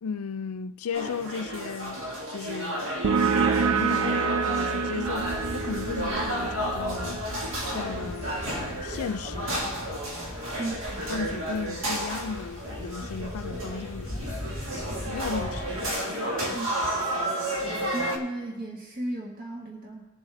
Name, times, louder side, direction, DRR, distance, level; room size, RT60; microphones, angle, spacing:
voice 1, 0.0-3.0 3.6-7.2 7.7-9.6 11.0-15.7, left 5 dB, 85° left, 0.4 m, -36 dB
sound 1, 0.9-18.2, right 1 dB, 65° right, 1.8 m, -32 dB
sound 2, 3.0-10.3, right 5 dB, 80° right, 0.5 m, -29 dB
sound 3, 5.0-15.9, left 1 dB, 10° right, 1.9 m, -40 dB
voice 2, 10.6-11.0 16.5-16.7 17.9-20.1, right 1 dB, 40° right, 1.5 m, -35 dB
20.0 x 7.1 x 3.3 m
head